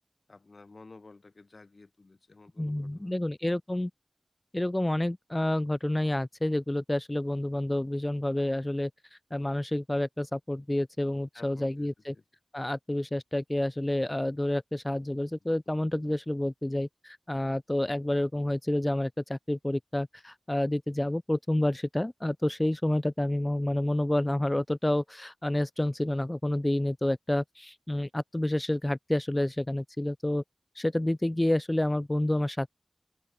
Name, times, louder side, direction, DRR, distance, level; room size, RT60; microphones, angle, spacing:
voice 1, 0.3-3.2 11.3-11.9 12.1-12.2 15.5-15.6, left 3 dB, 75° left, 3.0 m, -53 dB
voice 2, 2.6-3.9 4.5-12.2 12.5-30.4 30.8-32.7, left 1 dB, 25° left, 0.4 m, -29 dB
wide cardioid pair, 55°, 0 cm